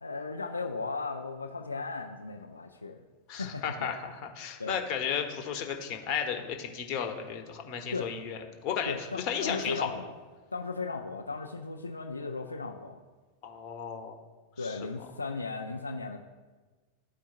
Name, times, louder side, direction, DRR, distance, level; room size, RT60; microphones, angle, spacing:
voice 1, 0.0-3.0 3.4-3.9 4.6-4.8 7.9-8.1 8.9-10.1 10.5-13.0 14.6-16.2, left 3 dB, 80° left, 2 dB, 0.4 m, -36 dB
voice 2, 3.3-9.9 13.4-14.2 14.6-14.8, left 7 dB, 40° left, 4 dB, 0.9 m, -34 dB
13.0 x 4.5 x 2.5 m, 1.3 s
figure-of-eight pair, 90°, 0 cm